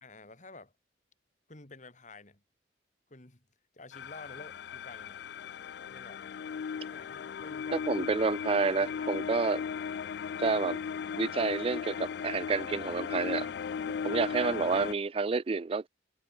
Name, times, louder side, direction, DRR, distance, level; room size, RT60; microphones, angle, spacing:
voice 1, 0.0-0.7 1.5-2.4 3.1-3.5 3.7-5.2 5.9-6.2 6.9-8.0 8.7-9.3, left 3 dB, 40° left, 2.9 m, -51 dB
sound 1, 3.9-14.9, left 6 dB, 60° left, 0.3 m, -37 dB
voice 2, 7.7-9.6 10.4-10.8 11.1-13.5 14.0-15.9, right 4 dB, 30° right, 0.4 m, -29 dB
head